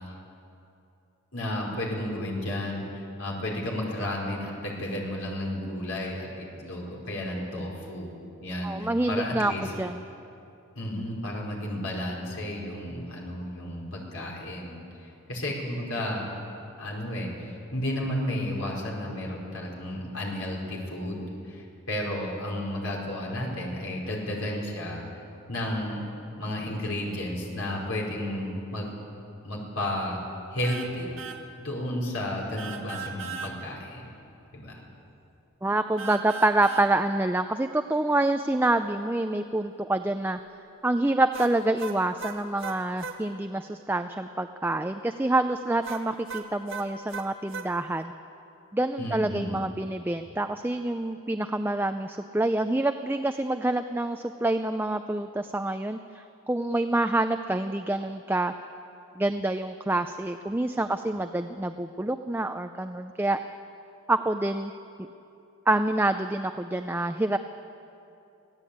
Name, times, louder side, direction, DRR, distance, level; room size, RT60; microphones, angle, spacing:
voice 1, 1.3-8.1 8.4-9.6 10.7-16.3 16.8-25.0 25.5-26.0 26.4-28.9 29.4-30.2 30.5-31.2 31.6-34.1 34.5-34.8 49.0-49.6, left 1 dB, 75° left, -2 dB, 4.9 m, -32 dB
voice 2, 8.6-10.0 35.6-40.4 40.8-48.1 48.7-58.5 59.2-63.4 64.1-64.7 65.7-67.4, right 2 dB, 10° right, 8 dB, 0.4 m, -27 dB
sound 1, 30.6-30.9 31.2-31.4 32.6-33.5 36.0-36.9 41.3-43.2 45.8-47.7, right 5 dB, 60° right, 1.9 m, -37 dB
25.0 x 16.0 x 8.6 m, 2.8 s
head